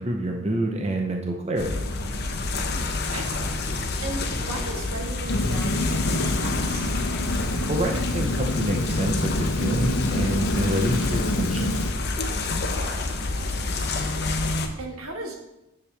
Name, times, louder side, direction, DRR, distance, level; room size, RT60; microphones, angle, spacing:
voice 1, 0.0-1.8 7.7-11.8, right 1 dB, 30° right, 2 dB, 0.7 m, -27 dB
sound 1, 1.6-14.7, left 3 dB, 50° left, 0.9 m, -28 dB
voice 2, 2.6-6.9 12.6-15.3, right 2 dB, 85° right, 1 dB, 1.6 m, -38 dB
Rain, 5.3-11.9, left 1 dB, 85° left, 0.8 m, -27 dB
9.8 x 6.9 x 3.4 m, 0.90 s
head